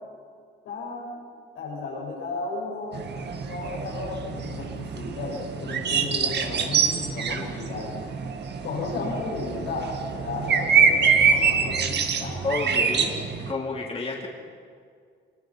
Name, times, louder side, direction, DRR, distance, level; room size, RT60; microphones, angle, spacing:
voice 1, 0.6-1.2 1.5-8.0 8.6-12.4, left 3 dB, 90° left, -5 dB, 6.4 m, -34 dB
sound 1, 2.9-13.5, right 6 dB, 60° right, 1.9 m, -25 dB
voice 2, 12.4-13.1 13.5-14.3, left 3 dB, 30° left, -2 dB, 3.6 m, -29 dB
25.0 x 21.5 x 5.6 m, 2.2 s
cardioid pair, 90°, 20 cm